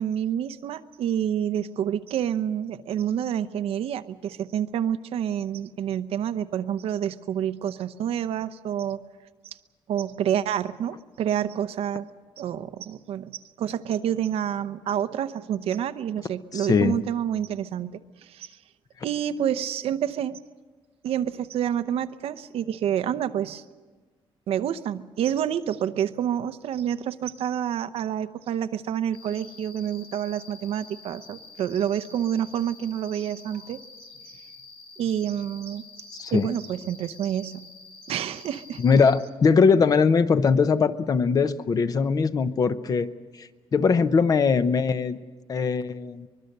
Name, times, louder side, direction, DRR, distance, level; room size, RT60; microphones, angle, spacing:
voice 1, 0.0-9.0 9.9-12.1 12.4-18.6 19.0-20.4 21.0-23.6 24.5-33.8 35.0-35.8 36.3-37.7 38.1-38.8, right 9 dB, 90° right, 12 dB, 0.8 m, -28 dB
voice 2, 16.5-17.0 36.1-36.6 38.8-45.2 45.5-46.3, left 5 dB, 40° left, 12 dB, 0.8 m, -21 dB
Cricket, 29.1-39.1, left 3 dB, 70° left, 7.9 m, -47 dB
24.0 x 21.5 x 6.7 m, 1.4 s
wide cardioid pair, 155°, 10 cm